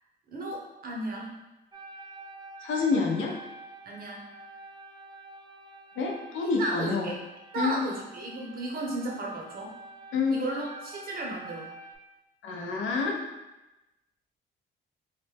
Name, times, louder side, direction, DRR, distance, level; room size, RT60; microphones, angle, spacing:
voice 1, 0.3-1.3 3.8-4.2 6.6-7.2 7.5-9.8 10.3-11.7, right 2 dB, 45° right, -2 dB, 0.9 m, -34 dB
sound 1, 1.7-12.0, right 2 dB, 20° right, 0.4 m, -48 dB
voice 2, 2.6-3.3 6.0-7.1 7.6-7.8 10.1-10.4 12.4-13.3, left 4 dB, 80° left, 0 dB, 0.6 m, -27 dB
3.2 x 2.1 x 3.3 m, 1.0 s
cardioid pair, 90°, 20 cm